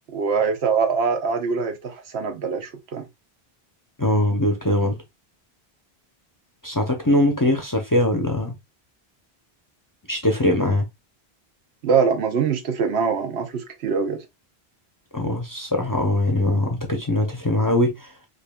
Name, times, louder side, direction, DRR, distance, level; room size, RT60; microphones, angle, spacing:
voice 1, 0.1-3.1 11.8-14.2, right 5 dB, 85° right, 1.0 m, -23 dB
voice 2, 4.0-5.0 6.6-8.5 10.1-10.9 15.1-18.1, left 1 dB, 25° left, 0.6 m, -21 dB
5.0 x 2.5 x 2.2 m
omnidirectional pair, 1.1 m